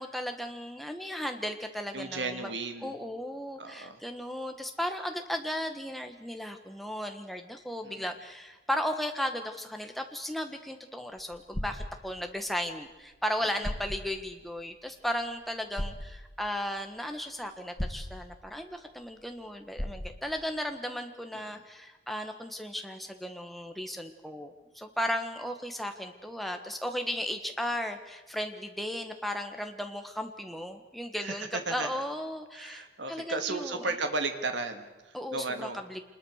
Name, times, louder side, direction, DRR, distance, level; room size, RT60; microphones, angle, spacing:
voice 1, 0.0-2.5 2.8-33.9 35.1-36.2, equal, ahead, 5 dB, 1.5 m, -35 dB
voice 2, 1.9-2.9 3.6-4.0 7.8-8.1 13.4-13.5 21.3-21.6 31.2-31.9 32.5-35.8, right 3 dB, 70° right, 6 dB, 2.0 m, -35 dB
sound 1, 11.2-11.9 13.2-13.3 13.6-14.0 15.8-16.1 17.8-18.1 19.8-20.2, equal, 30° left, 2.2 m, -34 dB
26.0 x 20.5 x 6.6 m, 1.1 s
head